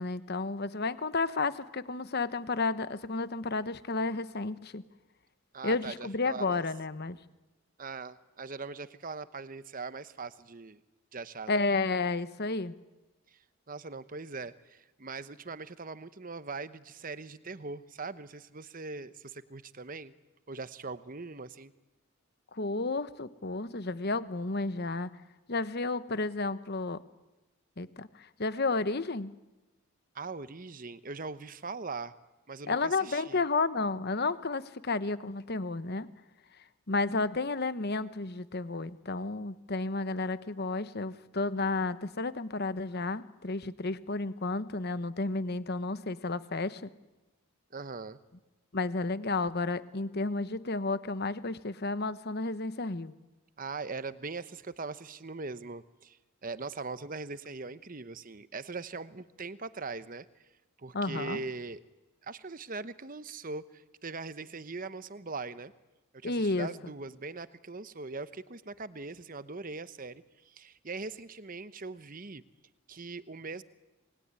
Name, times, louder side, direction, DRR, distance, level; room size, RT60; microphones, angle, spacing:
voice 1, 0.0-4.8 5.6-7.2 11.5-12.7 22.5-25.1 25.5-27.0 27.8-29.3 32.7-36.1 36.9-46.9 48.7-53.1 60.9-61.4 66.2-66.7, left 3 dB, 50° left, 14 dB, 1.0 m, -32 dB
voice 2, 5.5-6.6 7.8-10.8 11.1-11.6 13.3-13.4 13.7-20.1 20.5-21.7 30.1-32.1 32.5-33.4 47.7-48.2 53.6-60.3 60.8-61.8 62.2-65.7 66.2-72.4 72.9-73.6, right 3 dB, 40° right, 14 dB, 1.0 m, -41 dB
28.0 x 20.5 x 9.7 m, 1.1 s
head